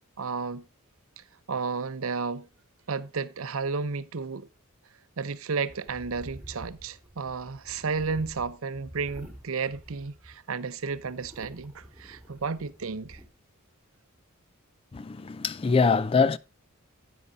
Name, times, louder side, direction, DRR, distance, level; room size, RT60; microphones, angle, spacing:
voice 1, 0.2-0.6 1.2-2.5 2.9-4.5 5.2-13.2, right 4 dB, 70° right, 0.7 m, -32 dB
sound 1, 5.7-10.5 10.9-13.3, equal, 5° right, 2.4 m, -48 dB
voice 2, 14.9-16.4, left 4 dB, 25° left, 0.4 m, -23 dB
10.0 x 9.4 x 2.7 m
head